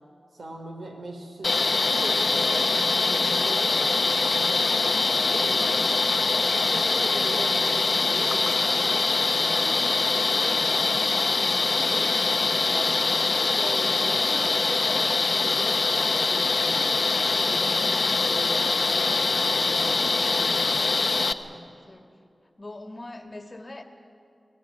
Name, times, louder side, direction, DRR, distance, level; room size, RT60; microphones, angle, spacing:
voice 1, 0.3-6.2 6.6-12.2 12.6-20.8 21.4-21.7, right 2 dB, 80° right, 3 dB, 3.6 m, -39 dB
sound 1, 1.4-21.3, left 3 dB, 65° left, 0.8 m, -23 dB
voice 2, 21.6-22.1 22.6-23.8, left 2 dB, 35° left, 5 dB, 1.9 m, -42 dB
23.5 x 16.5 x 8.5 m, 2.5 s
wide cardioid pair, 65°, 0 cm